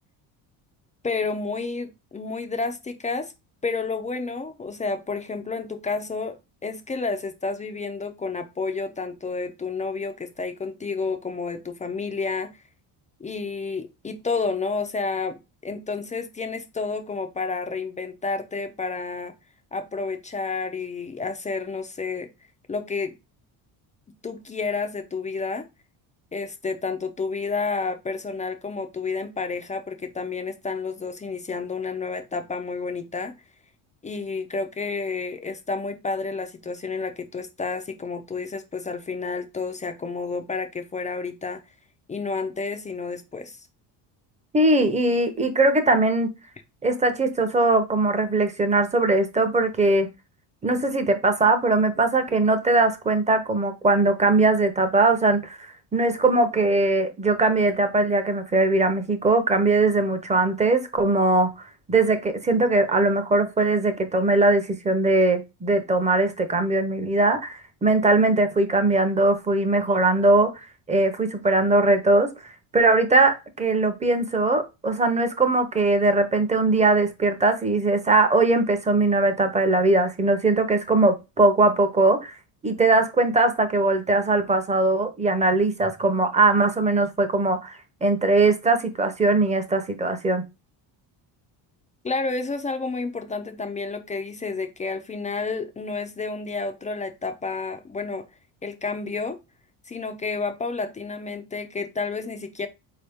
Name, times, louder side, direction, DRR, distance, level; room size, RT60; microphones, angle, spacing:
voice 1, 1.0-3.3 3.6-6.4 6.6-12.5 13.2-19.3 19.7-22.3 22.7-23.1 24.2-25.7 26.3-33.4 34.0-41.6 42.1-43.7 92.0-98.3 98.6-99.4 99.9-102.7, left 4 dB, 20° left, 0.4 m, -30 dB
voice 2, 44.5-46.3 46.8-50.1 50.6-61.5 61.9-70.6 70.9-72.3 72.7-82.3 82.6-90.4, right 2 dB, 15° right, 0.7 m, -20 dB
4.2 x 2.8 x 3.4 m
cardioid pair, 120°, 44 cm